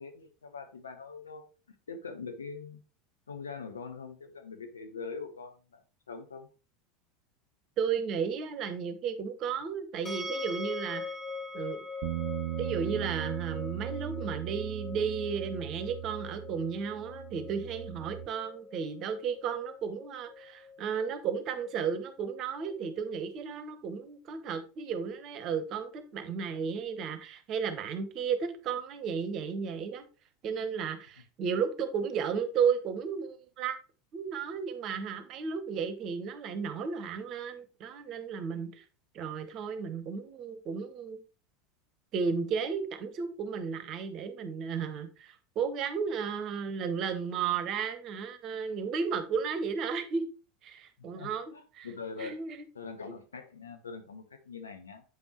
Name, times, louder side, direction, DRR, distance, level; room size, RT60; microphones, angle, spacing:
voice 1, 0.0-1.4 1.9-2.8 3.3-5.8 6.1-6.5 51.0-52.4 52.7-55.0, left 5 dB, 80° left, 0.9 m, -43 dB
voice 2, 7.8-11.0 11.5-11.8 12.6-30.1 30.4-33.8 34.1-38.8 39.1-41.2 42.1-50.2 50.6-51.9 52.2-52.6, right 6 dB, 45° right, 1.0 m, -34 dB
sound 1, 10.0-23.0, left 3 dB, 20° left, 1.6 m, -43 dB
Bass guitar, 12.0-18.3, right 15 dB, 65° right, 0.4 m, -38 dB
8.0 x 5.3 x 3.0 m
figure-of-eight pair, 80°, 0 cm